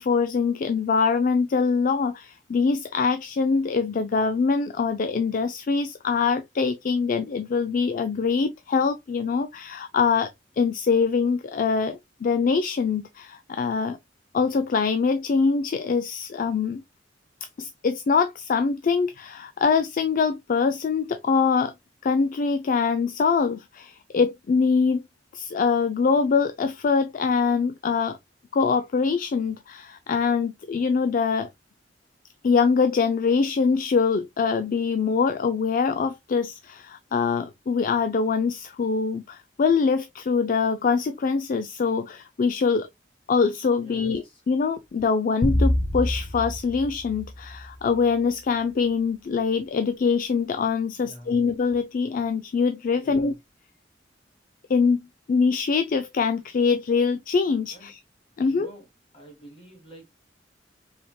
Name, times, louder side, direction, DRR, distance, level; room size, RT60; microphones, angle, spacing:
voice 1, 0.0-14.0 14.3-16.8 17.6-21.7 22.0-25.0 25.3-28.2 28.5-31.5 32.4-42.9 43.3-53.3 54.7-55.0 55.3-58.0 58.4-58.7, left 5 dB, 50° left, 0.4 m, -24 dB
voice 2, 43.8-44.4 51.0-51.4 52.9-53.4 57.7-57.9 58.4-58.9 59.1-60.1, equal, 30° left, 2.5 m, -47 dB
sound 1, 45.4-47.9, left 1 dB, 70° left, 1.2 m, -26 dB
4.8 x 3.5 x 2.2 m
head